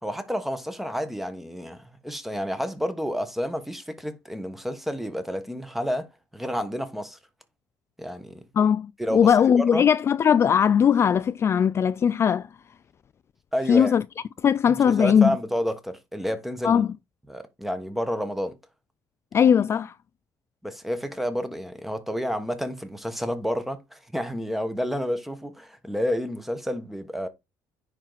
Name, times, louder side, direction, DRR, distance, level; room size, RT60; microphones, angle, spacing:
voice 1, 0.0-6.1 6.3-7.2 8.0-8.4 9.0-9.8 13.5-13.9 14.9-16.9 17.3-18.6 20.6-27.3, equal, ahead, 1.3 m, -30 dB
voice 2, 8.6-12.5 13.7-14.0 14.4-15.4 16.6-16.9 19.3-19.9, left 8 dB, 35° left, 0.3 m, -19 dB
10.0 x 4.4 x 4.0 m
cardioid pair, 130°, 8 cm